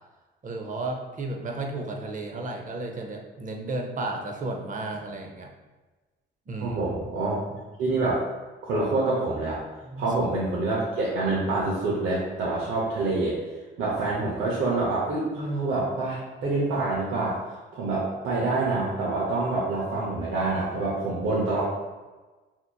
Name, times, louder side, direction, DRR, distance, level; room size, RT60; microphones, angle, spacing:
voice 1, 0.4-5.5 6.5-6.8 9.9-10.1, right 2 dB, 40° right, 1 dB, 0.7 m, -33 dB
voice 2, 6.6-7.4 7.8-8.2 8.6-9.6 10.0-13.4 13.8-17.4 17.7-21.6, right 2 dB, 85° right, -6 dB, 0.8 m, -26 dB
5.8 x 2.7 x 2.3 m, 1.2 s
cardioid pair, 90°, 20 cm